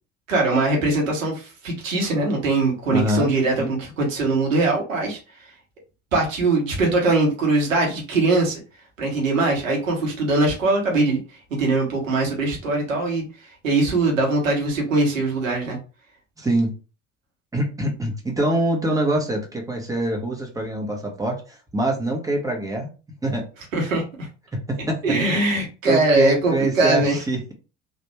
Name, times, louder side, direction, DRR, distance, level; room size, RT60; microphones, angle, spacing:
voice 1, 0.3-5.2 6.1-8.6 9.0-11.2 11.6-13.2 13.6-15.8 23.7-24.0 25.0-27.2, right 2 dB, 85° right, -1 dB, 1.4 m, -21 dB
voice 2, 2.9-3.3 3.6-3.8 16.4-16.7 17.5-22.9 23.2-23.4 24.5-25.0 25.8-27.5, right 1 dB, 10° right, 1 dB, 1.4 m, -24 dB
3.2 x 2.5 x 3.2 m, 0.33 s
hypercardioid pair, 65°, 38 cm